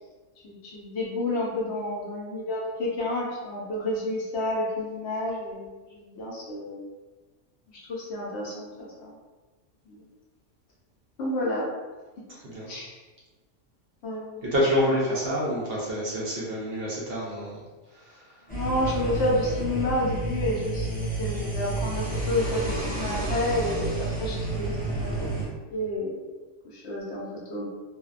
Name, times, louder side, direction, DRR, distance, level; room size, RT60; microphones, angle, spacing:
voice 1, 0.4-6.8 7.9-9.2 9.9-10.0 11.2-11.7 12.7-13.0 14.0-14.4 18.5-25.1 25.7-26.2 26.7-27.7, left 1 dB, 65° left, -4 dB, 0.8 m, -30 dB
voice 2, 14.4-17.6 17.9-18.4, equal, 60° right, -6 dB, 0.7 m, -27 dB
sound 1, 18.5-25.5, right 2 dB, 10° left, 0.5 m, -30 dB
2.6 x 2.1 x 2.4 m, 1.3 s
omnidirectional pair, 1.3 m